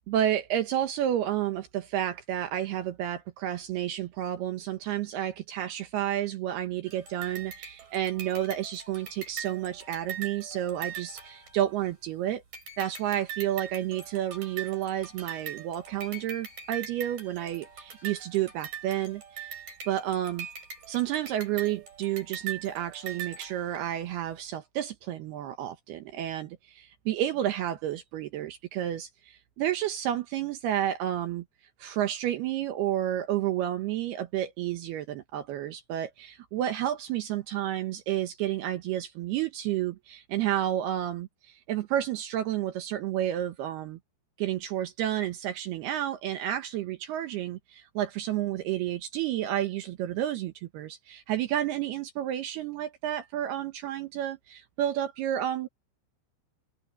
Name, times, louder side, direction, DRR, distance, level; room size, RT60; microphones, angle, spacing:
voice 1, 0.1-12.4 12.8-19.5 19.9-20.5 20.9-31.4 31.8-44.0 44.4-55.7, right 12 dB, 70° right, 2.8 m, -31 dB
sound 1, 6.8-12.1 12.5-24.1, right 8 dB, 50° right, 6.1 m, -42 dB
omnidirectional pair, 5.2 m